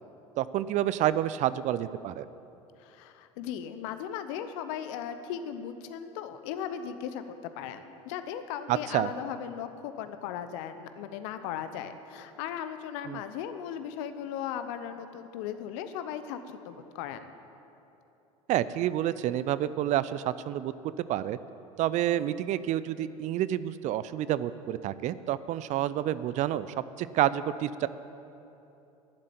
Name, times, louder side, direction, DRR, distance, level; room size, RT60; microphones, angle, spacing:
voice 1, 0.4-2.3 8.7-9.1 13.1-13.2 18.5-21.4 21.8-26.7 27.0-27.9, right 12 dB, 40° right, 16 dB, 0.5 m, -29 dB
voice 2, 2.8-17.3, left 9 dB, 60° left, 10 dB, 0.9 m, -37 dB
11.5 x 7.6 x 9.0 m, 2.9 s
figure-of-eight pair, 75°, 18 cm